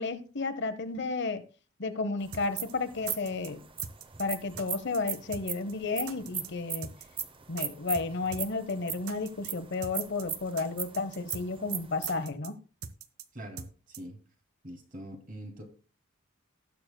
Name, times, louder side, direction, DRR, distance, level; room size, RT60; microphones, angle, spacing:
voice 1, 0.0-1.4 1.8-3.6 4.2-6.9 7.5-12.6, left 3 dB, 55° left, 0.9 m, -32 dB
sound 1, 2.2-12.2, right 8 dB, 25° right, 0.7 m, -38 dB
sound 2, 2.3-2.4 2.7-2.8 3.1-3.5 3.8-4.3 4.6-4.7 4.9-5.4 5.7-5.8 6.1-6.5 6.8-7.3 7.6-7.7 7.9-8.1 8.3-8.4 8.7-8.8 9.1-9.5 9.8-10.3 10.6-10.7 10.9-11.4 11.7-11.8 12.1-12.5 12.8-13.3 13.6-13.7 13.9-14.0, right 6 dB, 80° right, 0.9 m, -42 dB
voice 2, 13.3-14.2 14.6-15.6, right 1 dB, 40° right, 2.4 m, -43 dB
18.5 x 6.7 x 2.2 m
head